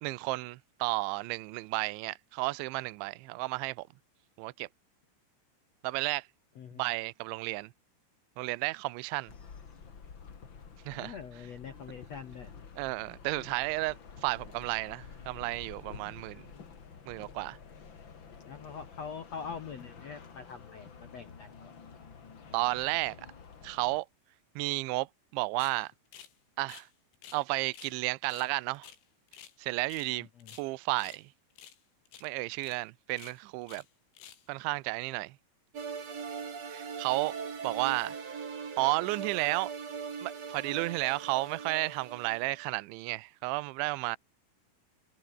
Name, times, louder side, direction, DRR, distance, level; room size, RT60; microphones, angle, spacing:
voice 1, 0.0-3.9 4.4-4.7 5.8-6.3 6.8-7.7 8.4-9.3 10.9-11.2 12.8-16.4 17.1-17.6 22.5-23.2 23.6-24.1 24.6-25.1 25.3-25.9 26.6-26.9 27.3-28.9 29.6-30.3 30.6-31.3 32.2-33.8 34.5-35.4 36.7-37.3 37.6-38.2 38.8-39.7 40.2-44.2, right 23 dB, 80° right, 3.1 m, -32 dB
sound 1, 9.3-24.0, left 6 dB, 40° left, 1.8 m, -50 dB
voice 2, 10.9-12.5 18.5-21.7 30.2-30.5, left 6 dB, 75° left, 1.5 m, -44 dB
sound 2, 25.6-25.8 26.1-26.3 26.6-27.4 27.7-28.0 28.3-29.6 29.9-30.1 30.4-31.2 31.6-31.8 32.1-32.3 32.6-32.8 33.1-33.9 34.1-34.5, left 10 dB, 90° left, 5.6 m, -52 dB
sound 3, 35.7-42.7, right 6 dB, 35° right, 3.9 m, -40 dB
omnidirectional pair, 5.7 m